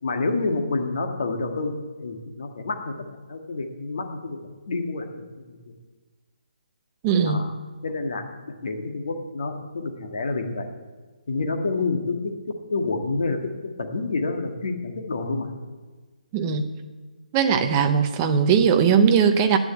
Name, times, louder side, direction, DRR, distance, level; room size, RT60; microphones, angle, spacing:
voice 1, 0.0-1.7 2.0-2.9 3.3-4.4 4.7-5.6 7.2-7.5 7.8-8.2 8.6-10.7 11.3-13.4 13.8-15.5, left 3 dB, 45° left, 4 dB, 1.7 m, -28 dB
voice 2, 7.0-7.5 16.3-16.7 17.3-19.6, right 6 dB, 10° right, 7 dB, 0.5 m, -19 dB
10.5 x 9.5 x 8.2 m, 1.3 s
hypercardioid pair, 175°, 5 cm